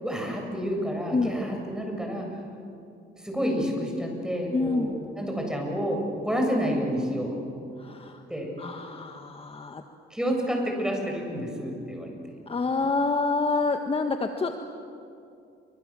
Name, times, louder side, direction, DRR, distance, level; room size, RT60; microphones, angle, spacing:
voice 1, 0.0-2.3 3.2-7.4 8.3-8.5 10.1-12.1, equal, 5° right, 1 dB, 7.7 m, -29 dB
voice 2, 4.5-5.0 7.8-8.2 8.6-9.8 12.5-14.6, left 3 dB, 30° left, 5 dB, 1.5 m, -27 dB
29.0 x 24.5 x 7.6 m, 2.6 s
cardioid pair, 90°, 20 cm